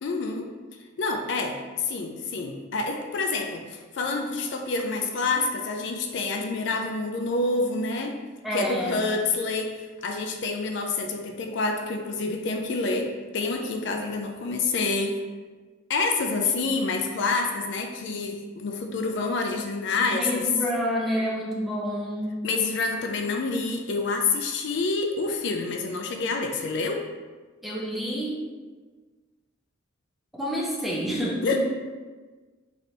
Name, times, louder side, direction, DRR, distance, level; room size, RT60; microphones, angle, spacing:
voice 1, 0.0-0.5 1.0-8.2 8.5-15.2 15.9-20.5 22.4-27.1 31.4-31.6, left 3 dB, 60° left, 4 dB, 0.4 m, -27 dB
voice 2, 8.4-9.0 20.1-22.4 27.6-28.4 30.3-31.6, equal, ahead, -5 dB, 0.6 m, -28 dB
4.1 x 3.3 x 2.8 m, 1.4 s
head